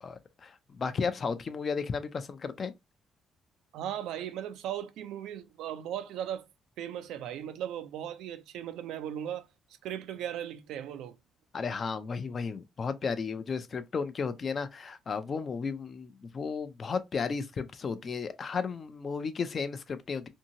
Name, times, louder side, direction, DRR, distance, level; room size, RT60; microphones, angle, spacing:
voice 1, 0.0-2.7 11.5-20.3, left 5 dB, 45° left, 0.4 m, -34 dB
voice 2, 3.7-6.5 6.8-9.5 9.8-11.2, right 10 dB, 90° right, 0.4 m, -37 dB
2.7 x 2.6 x 2.7 m
cardioid pair, 90°, 0 cm